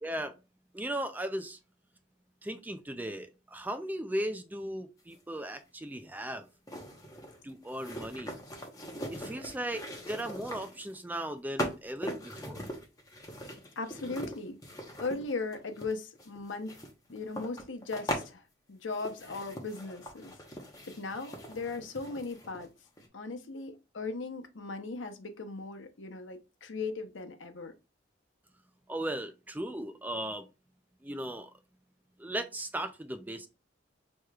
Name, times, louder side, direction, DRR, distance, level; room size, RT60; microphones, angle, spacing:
voice 1, 0.0-0.4 0.7-1.6 2.4-6.5 7.4-8.4 9.1-12.7 28.9-30.5 31.0-31.5 32.2-33.5, right 1 dB, 10° right, 0.4 m, -37 dB
sound 1, 5.2-5.3 6.7-10.9 11.6-18.3 18.9-22.7 23.0-23.1, equal, 20° left, 1.0 m, -41 dB
voice 2, 13.8-14.6 15.0-16.7 17.1-18.4 18.7-20.3 20.9-22.7 23.1-27.7, left 3 dB, 80° left, 0.8 m, -38 dB
6.5 x 3.0 x 2.3 m
head